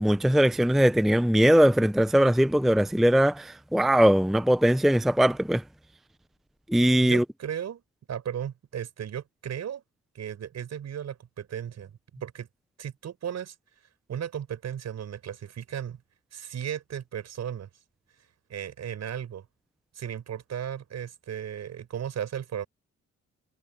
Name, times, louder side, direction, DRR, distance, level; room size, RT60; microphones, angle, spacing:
voice 1, 0.0-5.6 6.7-7.2, equal, ahead, 0.6 m, -21 dB
voice 2, 7.0-7.8 8.1-9.8 10.2-11.9 12.2-12.5 12.8-13.6 14.1-16.0 16.3-17.7 18.5-19.4 20.0-22.7, right 9 dB, 60° right, 6.9 m, -35 dB
cardioid pair, 90°, 30 cm